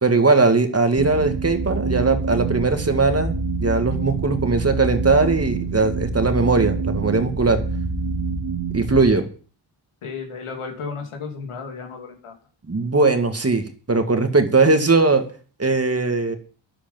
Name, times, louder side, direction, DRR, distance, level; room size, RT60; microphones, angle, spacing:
voice 1, 0.0-7.6 8.7-9.3 12.7-15.3 15.6-16.4, right 3 dB, 30° right, 7 dB, 2.0 m, -19 dB
sound 1, 1.0-9.1, right 3 dB, 70° right, 2.4 m, -26 dB
voice 2, 10.0-12.4, left 5 dB, 85° left, 3 dB, 2.9 m, -33 dB
9.9 x 8.1 x 7.3 m, 0.41 s
cardioid pair, 55°, 49 cm